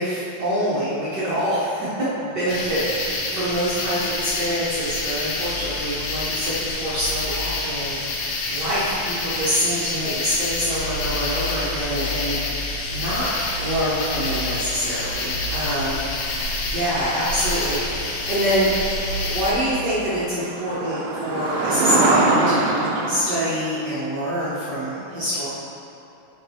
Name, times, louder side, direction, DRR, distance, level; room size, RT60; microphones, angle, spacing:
voice 1, 0.0-1.9 2.2-13.3 13.6-16.0 16.7-18.7 19.2-25.5, equal, 65° right, -10 dB, 1.0 m, -26 dB
sound 1, 2.5-19.5, left 2 dB, 70° left, 1.6 m, -27 dB
sound 2, 13.5-15.0 18.5-18.6 19.1-19.2 19.4-23.2, right 2 dB, 90° right, 2.2 m, -23 dB
7.4 x 4.6 x 4.1 m, 2.9 s
omnidirectional pair, 3.5 m